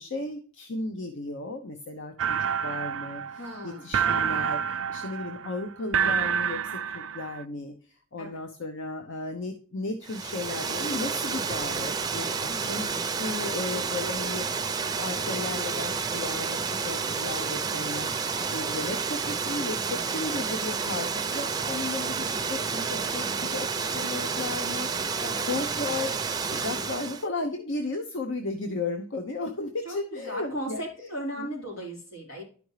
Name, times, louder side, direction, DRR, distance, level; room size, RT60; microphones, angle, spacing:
voice 1, 0.0-25.2 25.5-26.2 26.5-30.8, left 2 dB, 65° left, 5 dB, 0.9 m, -35 dB
sound 1, 2.2-7.4, right 7 dB, 75° right, 0.4 m, -28 dB
voice 2, 3.4-4.5 8.2-8.4 12.5-13.3 23.2-23.6 25.2-25.5 26.5-26.9 29.8-32.4, equal, 90° left, -3 dB, 4.4 m, -38 dB
Water, 10.0-27.3, right 5 dB, 20° right, 0.5 m, -30 dB
11.5 x 5.2 x 3.2 m, 0.41 s
head